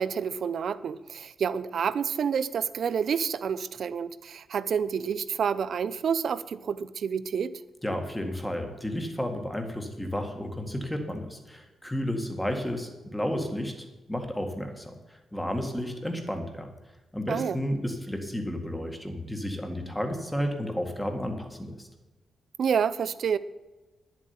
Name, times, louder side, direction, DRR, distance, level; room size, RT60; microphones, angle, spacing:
voice 1, 0.0-7.5 17.3-17.6 22.6-23.4, right 7 dB, 60° right, 15 dB, 0.6 m, -28 dB
voice 2, 7.8-13.8 14.1-16.7 17.1-21.9, equal, 5° left, 5 dB, 1.9 m, -32 dB
10.5 x 7.4 x 9.6 m, 1.1 s
cardioid pair, 125°, 0 cm